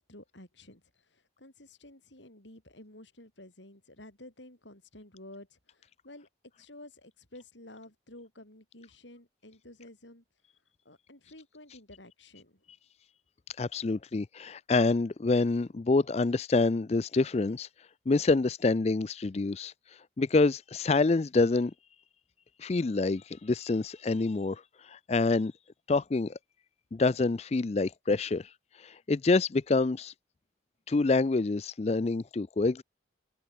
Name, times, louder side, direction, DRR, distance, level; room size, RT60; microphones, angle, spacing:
voice 1, 0.0-6.3 6.6-10.2 10.8-12.6, left 1 dB, 75° left, 8.0 m, -52 dB
voice 2, 13.6-17.7 18.1-21.7 22.6-25.5 25.9-26.4 26.9-30.1 30.9-32.8, left 3 dB, 35° left, 0.4 m, -27 dB
head